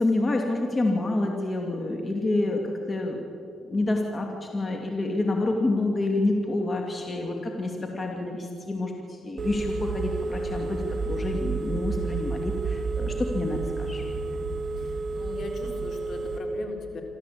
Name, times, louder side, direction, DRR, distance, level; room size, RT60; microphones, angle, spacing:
voice 1, 0.0-3.2 3.6-14.0, left 2 dB, 30° left, 2 dB, 2.4 m, -28 dB
Telephone, 9.4-16.4, right 3 dB, 40° right, 3.4 m, -30 dB
voice 2, 14.8-17.0, left 3 dB, 60° left, 3 dB, 3.7 m, -40 dB
27.0 x 13.5 x 8.6 m, 2.6 s
cardioid pair, 90°, 0 cm